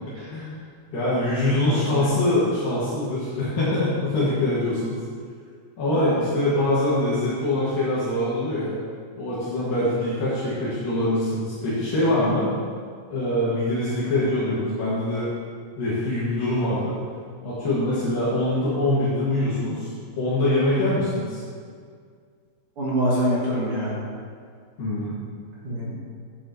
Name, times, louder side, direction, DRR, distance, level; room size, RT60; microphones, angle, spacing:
voice 1, 0.9-5.0 5.8-8.7 9.2-12.5 13.1-15.3 15.8-17.0 17.4-21.4 24.8-25.2, left 1 dB, 65° left, -10 dB, 3.3 m, -24 dB
voice 2, 1.6-2.1 22.8-24.0 25.6-25.9, equal, 45° right, -7 dB, 2.4 m, -25 dB
12.5 x 9.7 x 3.0 m, 2.1 s
omnidirectional pair, 4.4 m